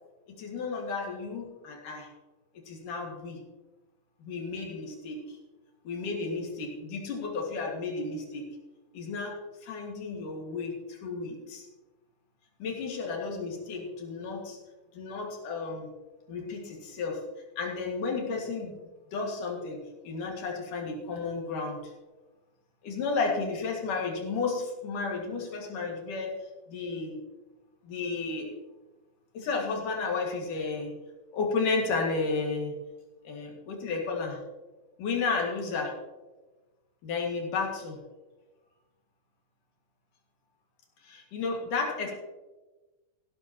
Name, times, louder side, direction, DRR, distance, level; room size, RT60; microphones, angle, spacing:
voice 1, 0.3-2.1 2.7-3.4 4.2-5.4 5.8-8.5 8.9-11.7 12.6-14.6 14.9-15.9 16.3-17.2 17.6-18.8 19.1-21.9 22.8-26.4 26.7-27.2 27.8-28.5 29.3-31.0 31.3-32.7 33.2-34.4 35.0-36.0 37.0-38.0 41.0-42.1, left 4 dB, 75° left, 0 dB, 3.4 m, -32 dB
15.0 x 12.5 x 2.9 m, 1.2 s
omnidirectional pair, 3.8 m